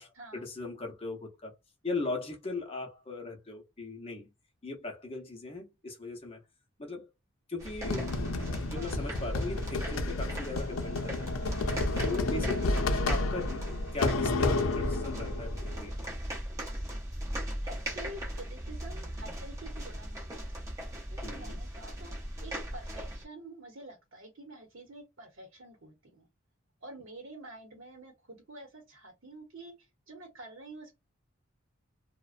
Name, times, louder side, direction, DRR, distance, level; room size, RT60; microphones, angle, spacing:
voice 1, 0.0-1.5 1.8-4.3 4.6-6.4 6.8-7.1 7.5-8.1 8.4-11.3 12.0-13.6 13.9-15.9 21.2-21.6, left 3 dB, 30° left, 0.6 m, -38 dB
sound 1, 7.6-23.2, equal, 15° right, 0.6 m, -38 dB
sound 2, 7.8-15.9, left 2 dB, 80° left, 0.5 m, -31 dB
voice 2, 8.3-9.0 12.2-12.8 17.6-20.6 21.1-26.3 26.8-30.9, right 2 dB, 70° right, 0.8 m, -48 dB
2.4 x 2.1 x 2.4 m
head